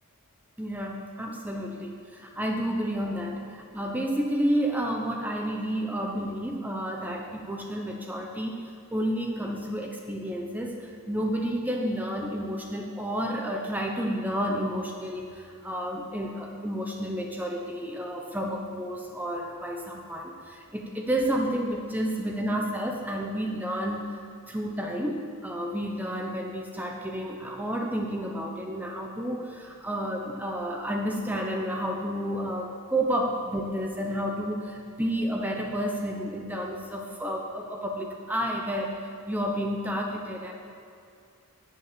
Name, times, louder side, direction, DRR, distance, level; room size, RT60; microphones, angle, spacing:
voice 1, 0.6-40.5, equal, 10° right, 1 dB, 0.9 m, -31 dB
17.5 x 7.0 x 6.8 m, 2.5 s
head